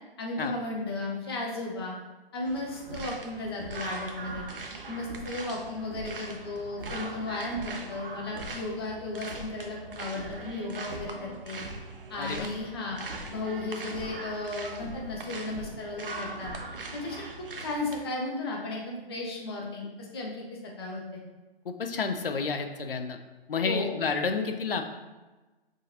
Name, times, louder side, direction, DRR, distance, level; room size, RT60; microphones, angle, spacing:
voice 1, 0.2-1.9 2.3-4.4 4.9-11.6 12.1-13.0 13.3-16.5 16.9-17.2 17.6-20.5 20.8-21.2 23.6-23.9, left 2 dB, 25° left, -2 dB, 0.7 m, -35 dB
sound 1, 2.4-18.0, right 3 dB, 65° right, 0.6 m, -41 dB
sound 2, 2.9-3.2 3.6-4.0 4.2-5.4 5.8-6.2 6.7-7.9 8.2-8.7 9.1-9.9 10.1-10.5 10.8-11.2 11.6-11.9 12.2-12.6 13.1-13.4 13.8-14.2 14.7-15.9 16.4-16.9, equal, 90° right, 1.4 m, -43 dB
voice 2, 12.2-12.5 21.7-23.2 23.5-24.8, left 5 dB, 65° left, 6 dB, 0.6 m, -30 dB
6.2 x 2.8 x 2.5 m, 1.2 s
figure-of-eight pair, 135°, 30 cm